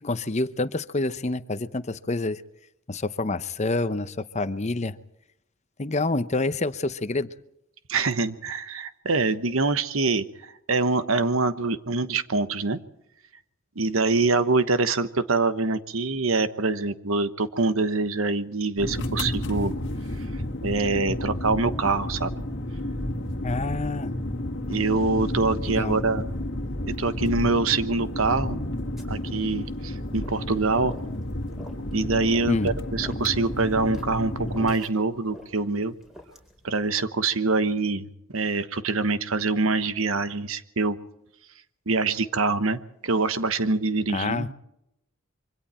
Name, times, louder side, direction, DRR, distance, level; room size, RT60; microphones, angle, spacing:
voice 1, 0.0-2.4 2.9-5.0 5.8-7.3 23.4-24.1 25.7-26.0 32.5-32.7 44.1-44.5, left 2 dB, 35° left, 12 dB, 0.8 m, -27 dB
voice 2, 7.9-12.8 13.8-19.7 20.6-22.3 24.7-26.2 26.9-28.6 29.1-30.9 31.9-35.9 36.6-38.1 38.3-41.0 41.9-44.5, right 3 dB, 80° right, 12 dB, 1.2 m, -25 dB
sound 1, 18.8-34.7, left 1 dB, 55° left, 1.8 m, -31 dB
sound 2, 29.0-36.7, equal, ahead, 4.1 m, -49 dB
26.0 x 24.5 x 4.4 m, 0.80 s
head